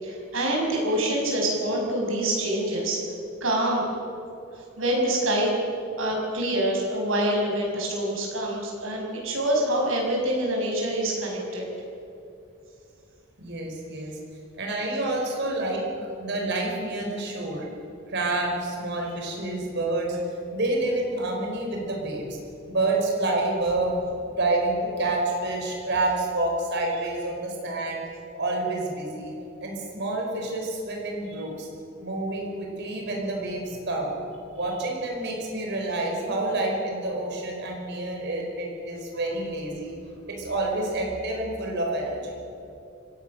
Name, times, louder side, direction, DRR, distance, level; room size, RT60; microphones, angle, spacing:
voice 1, 0.0-3.0 3.4-3.8 4.8-5.7 6.0-11.7, right 1 dB, 75° right, -1 dB, 6.1 m, -26 dB
voice 2, 13.4-14.2 14.6-15.8 16.2-17.7 18.1-20.2 20.5-22.4 22.7-28.0 28.3-29.3 29.6-31.7 32.0-34.1 34.5-39.9 40.3-42.3, right 2 dB, 60° right, 0 dB, 4.8 m, -28 dB
25.0 x 17.0 x 6.5 m, 2.7 s
head